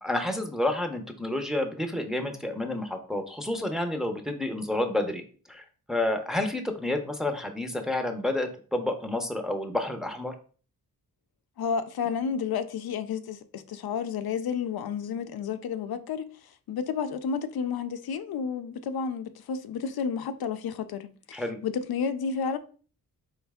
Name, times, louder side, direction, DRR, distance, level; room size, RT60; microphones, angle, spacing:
voice 1, 0.0-5.2 5.5-10.3 21.3-21.6, left 1 dB, ahead, 0.6 m, -30 dB
voice 2, 11.6-16.3 16.7-22.6, left 6 dB, 85° left, 0.5 m, -31 dB
4.3 x 3.2 x 3.5 m
wide cardioid pair, 115°, 36 cm